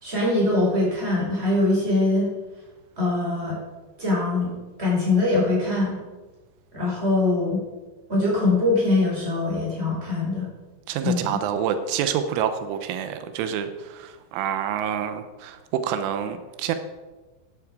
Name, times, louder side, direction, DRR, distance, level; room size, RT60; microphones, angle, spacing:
voice 1, 0.0-2.3 3.0-3.6 4.0-4.5 4.8-6.0 6.7-7.6 8.1-10.5 11.0-11.4, left 2 dB, 15° right, -4 dB, 4.8 m, -22 dB
voice 2, 10.9-16.8, right 8 dB, 90° right, 9 dB, 3.4 m, -27 dB
12.5 x 11.0 x 4.8 m, 1.2 s
omnidirectional pair, 5.6 m